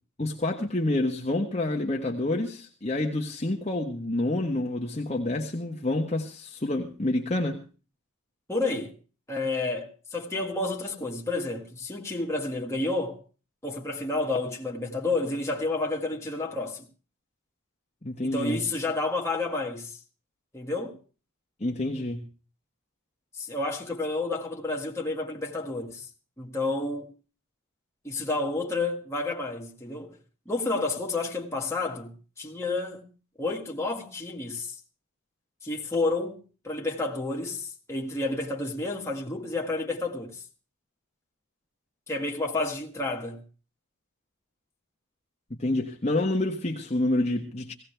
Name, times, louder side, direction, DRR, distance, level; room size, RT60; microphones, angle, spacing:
voice 1, 0.2-7.6 18.0-18.6 21.6-22.3 45.5-47.7, left 2 dB, 30° left, 1.3 m, -28 dB
voice 2, 8.5-8.9 9.3-13.2 13.6-16.9 18.2-20.0 20.5-21.0 23.3-26.1 26.4-27.1 28.0-30.2 30.5-33.1 33.4-34.8 35.6-36.4 36.6-40.4 42.1-43.4, left 2 dB, 15° left, 2.0 m, -30 dB
17.5 x 16.5 x 3.4 m
head